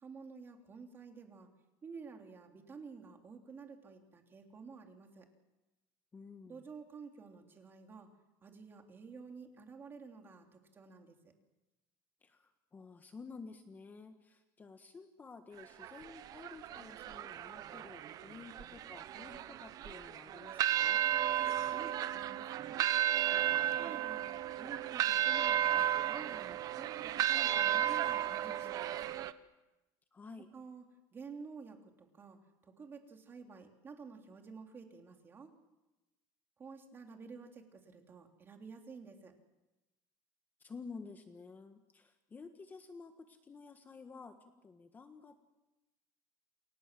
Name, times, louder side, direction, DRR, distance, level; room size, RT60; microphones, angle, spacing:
voice 1, 0.0-1.5 1.8-5.3 6.5-8.1 8.4-11.2 21.6-22.9 23.6-29.2 30.5-30.8 31.1-35.5 36.6-39.3, right 5 dB, 25° right, 4 dB, 3.3 m, -51 dB
voice 2, 6.1-6.6 12.2-21.0 30.1-30.5 40.6-45.4, left 4 dB, 20° left, 7 dB, 1.4 m, -52 dB
sound 1, 15.6-29.3, right 11 dB, 45° right, 1.0 m, -34 dB
29.5 x 23.0 x 7.7 m, 1.0 s
cardioid pair, 150°, 9 cm